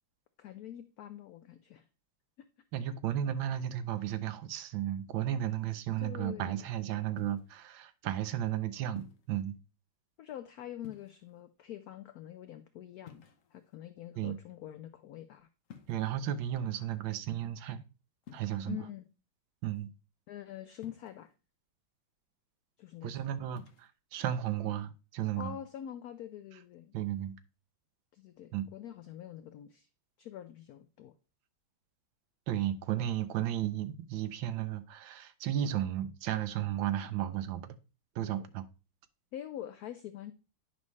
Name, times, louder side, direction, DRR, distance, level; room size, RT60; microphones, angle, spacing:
voice 1, 0.4-1.8 2.4-2.5 6.0-6.6 10.2-13.2 13.5-15.5 18.7-19.0 20.3-21.3 22.8-23.3 25.3-27.0 28.1-29.9 30.2-31.1 38.2-38.5 39.3-40.3, left 11 dB, 85° left, 0.8 m, -45 dB
voice 2, 2.7-9.6 14.2-14.4 15.9-17.8 18.3-18.8 19.6-19.9 23.0-25.5 26.9-27.3 28.5-28.7 32.5-37.7 38.1-38.6, right 11 dB, 80° right, 1.4 m, -34 dB
sound 1, 7.2-7.6 9.0-9.4 10.8-11.4 13.0-13.8 15.7-16.2 18.2-18.5 20.8-21.3 23.5-23.9, left 8 dB, 55° left, 0.9 m, -53 dB
9.5 x 5.4 x 3.1 m
omnidirectional pair, 2.2 m